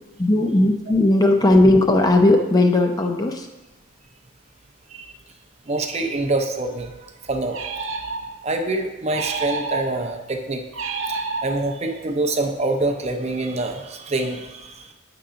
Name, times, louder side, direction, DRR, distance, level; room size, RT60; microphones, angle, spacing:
voice 1, 0.2-3.5, left 2 dB, 20° left, 3 dB, 0.5 m, -17 dB
voice 2, 5.7-7.6 8.4-10.6 11.4-14.9, right 2 dB, 30° right, 5 dB, 0.6 m, -25 dB
sound 1, 7.5-8.5 9.1-10.2 10.7-11.9, right 4 dB, 80° right, 0.7 m, -29 dB
8.3 x 3.8 x 5.7 m, 1.1 s
head